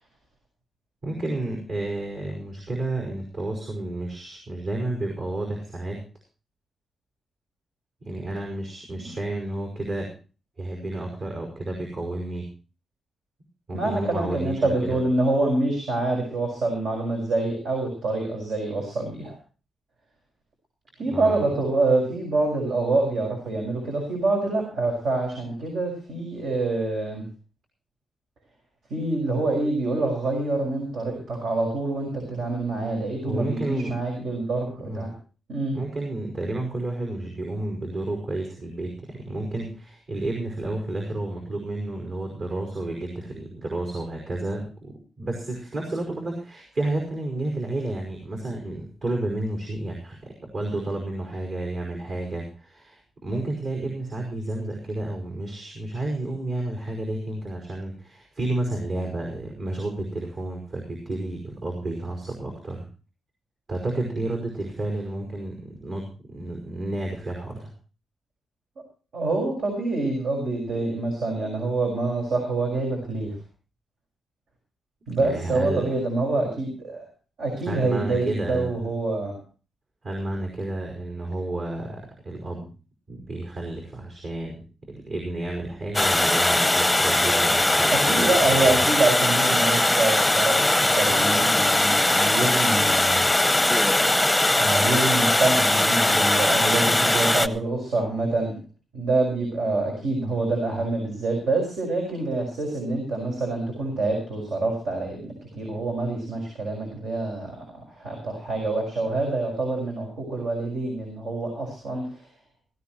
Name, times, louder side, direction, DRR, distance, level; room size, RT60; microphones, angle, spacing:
voice 1, 1.0-6.0 8.0-10.1 10.6-12.5 13.7-15.0 21.0-21.5 33.2-34.0 34.8-35.0 35.7-50.2 50.4-62.8 63.7-67.7 75.2-75.9 77.7-78.7 80.0-82.7 83.1-88.8, right 2 dB, 55° right, 1 dB, 5.3 m, -31 dB
voice 2, 13.7-19.4 21.0-27.2 28.9-35.1 35.5-35.8 69.1-73.4 75.1-77.1 77.4-79.4 87.9-93.3 94.5-98.6 98.9-107.6 107.9-112.3, right 2 dB, 75° right, 1 dB, 5.9 m, -26 dB
Water, 85.9-97.5, left 1 dB, 5° left, 0.8 m, -20 dB
18.0 x 16.5 x 3.1 m, 0.36 s
cardioid pair, 120°, 0 cm